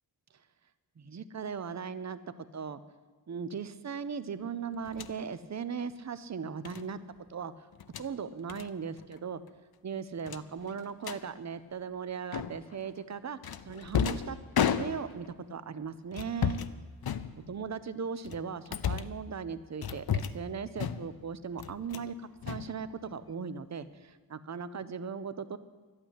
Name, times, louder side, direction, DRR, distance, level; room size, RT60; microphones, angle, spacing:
voice 1, 1.0-2.2 2.5-2.8 3.3-7.0 7.3-7.7 8.0-9.4 9.8-13.4 13.7-16.6 17.5-25.6, right 6 dB, 40° right, 14 dB, 0.7 m, -38 dB
sound 1, 4.9-5.2 6.7-6.9 7.7-8.1 8.5-8.7 9.0-9.2 9.5-9.6 10.3-11.2 12.3-12.8 13.4-15.3 16.1-16.7 17.0-17.7 18.2-19.2 19.8-20.5 20.8-21.2 21.6-22.1 22.4-23.3, left 8 dB, 55° left, 0.7 m, -33 dB
12.5 x 8.9 x 9.9 m, 1.4 s
wide cardioid pair, 130°, 43 cm